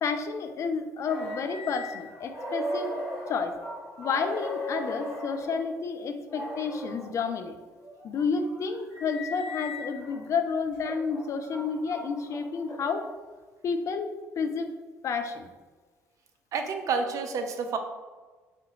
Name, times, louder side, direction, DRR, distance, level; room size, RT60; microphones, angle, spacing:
voice 1, 0.0-3.0 3.3-3.6 4.0-7.5 8.0-13.1 13.6-14.7 15.0-15.5, left 5 dB, 40° left, 7 dB, 0.4 m, -30 dB
sound 1, 1.0-5.6 6.3-7.1 7.8-10.2 10.7-13.1, left 1 dB, 60° left, 1.3 m, -38 dB
voice 2, 16.5-17.8, right 5 dB, 45° right, 5 dB, 0.5 m, -29 dB
3.5 x 2.7 x 3.7 m, 1.4 s
figure-of-eight pair, 50°, 8 cm